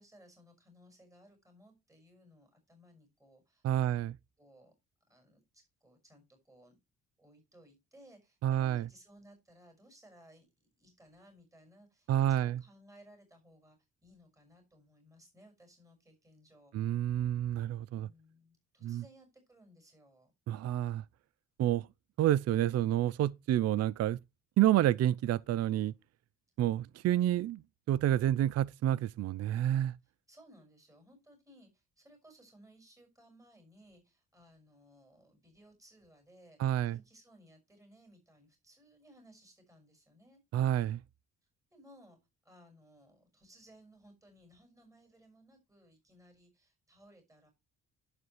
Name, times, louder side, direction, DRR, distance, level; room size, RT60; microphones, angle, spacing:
voice 1, 0.0-4.0 4.4-4.7 5.1-6.8 7.2-16.7 18.0-20.3 30.0-36.6 36.9-40.4 41.7-47.5, equal, 10° right, 5.7 m, -61 dB
voice 2, 3.6-4.1 8.4-8.9 12.1-12.6 16.7-18.1 18.8-19.0 20.5-21.0 21.6-21.9 22.2-24.2 24.6-25.9 26.6-27.6 27.9-29.9 36.6-37.0 40.5-41.0, right 12 dB, 55° right, 0.5 m, -29 dB
11.0 x 7.9 x 3.3 m
cardioid pair, 90°, 30 cm